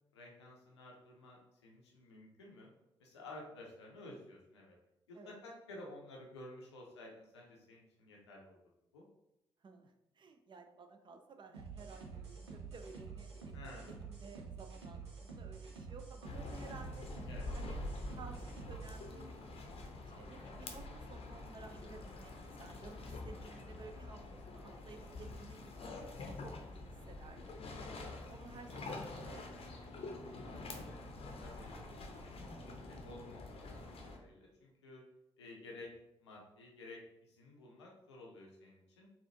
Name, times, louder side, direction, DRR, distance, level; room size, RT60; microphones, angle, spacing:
voice 1, 0.1-2.7 3.0-4.8 5.1-8.6 8.9-9.0 13.5-13.9 17.3-17.5 31.4-32.5 32.9-35.0 35.4-35.9 36.2-39.1, left 2 dB, 80° left, -2 dB, 0.6 m, -53 dB
voice 2, 9.6-17.1 17.5-17.8 18.1-27.7 28.0-29.7, right 4 dB, 35° right, 5 dB, 0.5 m, -55 dB
sound 1, 11.5-19.1, right 5 dB, 85° right, 0.5 m, -48 dB
sound 2, 16.2-34.2, left 2 dB, 45° left, 0.6 m, -46 dB
4.0 x 2.4 x 2.8 m, 0.89 s
figure-of-eight pair, 40°, 14 cm